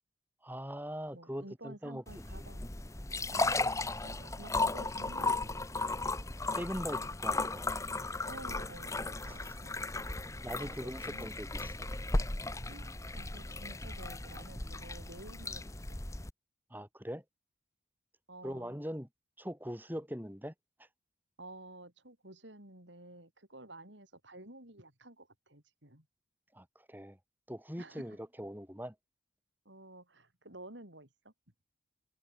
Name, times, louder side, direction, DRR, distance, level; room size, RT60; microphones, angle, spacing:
voice 1, 0.4-2.0 2.3-2.4 6.5-7.7 9.2-9.6 10.4-11.7 16.7-17.2 18.4-19.1 19.4-20.5 26.5-27.2 27.5-28.9, equal, 10° right, 6.0 m, -41 dB
voice 2, 1.1-2.7 3.3-6.1 8.3-9.8 10.4-11.3 12.7-16.1 18.3-18.8 21.4-26.1 27.8-28.2 29.7-31.3, right 1 dB, 70° right, 7.2 m, -52 dB
sound 1, 2.1-16.3, left 2 dB, 15° left, 1.2 m, -36 dB
head